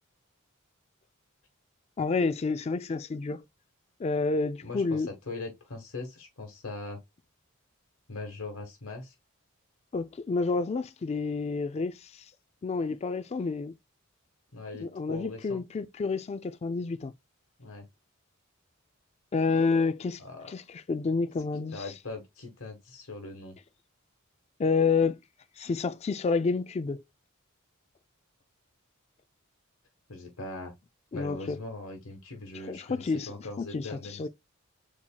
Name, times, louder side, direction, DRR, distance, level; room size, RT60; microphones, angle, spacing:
voice 1, 2.0-3.4 4.0-5.1 9.9-12.1 12.6-13.7 14.8-17.1 19.3-20.2 20.5-20.6 20.9-21.8 24.6-25.2 25.6-27.0 31.1-31.6 32.7-34.3, left 4 dB, 30° left, 0.3 m, -29 dB
voice 2, 4.6-7.0 8.1-9.1 14.5-15.6 17.6-17.9 20.2-20.5 21.7-23.6 30.1-30.7 31.1-34.2, left 2 dB, 80° left, 1.2 m, -40 dB
7.1 x 2.9 x 2.2 m
head